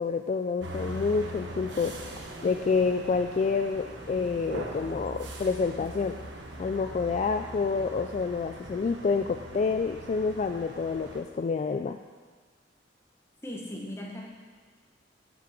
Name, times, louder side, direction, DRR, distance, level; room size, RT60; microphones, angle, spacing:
voice 1, 0.0-1.9 2.4-6.2 6.6-12.0, left 4 dB, 40° left, 6 dB, 0.3 m, -28 dB
sound 1, 0.6-11.2, right 1 dB, 75° right, 1.2 m, -41 dB
voice 2, 13.4-14.3, left 1 dB, 15° left, -2 dB, 1.5 m, -38 dB
8.4 x 6.1 x 6.1 m, 1.5 s
head